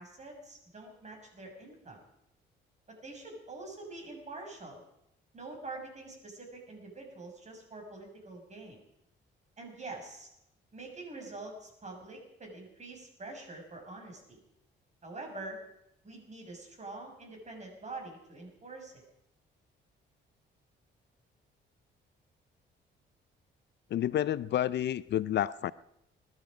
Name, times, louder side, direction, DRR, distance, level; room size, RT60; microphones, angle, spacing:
voice 1, 0.0-2.0 2.9-4.8 5.3-8.8 9.6-10.3 10.7-14.4 15.0-15.6 16.0-19.0, right 2 dB, 35° right, 2 dB, 6.2 m, -45 dB
voice 2, 23.9-25.7, left 12 dB, 60° left, 17 dB, 0.5 m, -29 dB
20.5 x 12.5 x 5.2 m, 0.82 s
cardioid pair, 90°, 20 cm